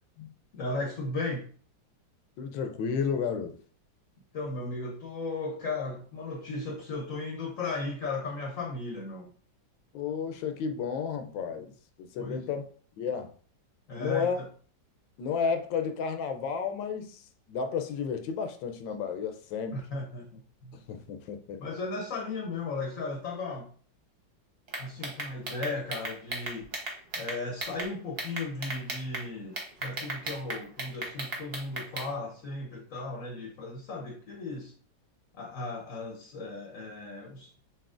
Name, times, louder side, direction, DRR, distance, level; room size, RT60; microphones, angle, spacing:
voice 1, 0.5-1.5 4.3-9.3 12.2-12.4 13.9-14.4 19.7-20.7 21.6-23.7 24.8-26.7 27.2-34.7 35.3-37.5, left 3 dB, 55° left, 1.0 m, -36 dB
voice 2, 2.4-3.6 9.9-11.7 12.0-12.7 13.0-13.3 14.0-14.4 15.2-19.8 20.7-21.6 25.0-25.1, left 6 dB, 80° left, 1.3 m, -32 dB
sound 1, 24.7-27.9 28.2-29.2 29.6-32.1, right 2 dB, 40° right, 0.9 m, -35 dB
6.8 x 3.0 x 2.4 m
omnidirectional pair, 2.1 m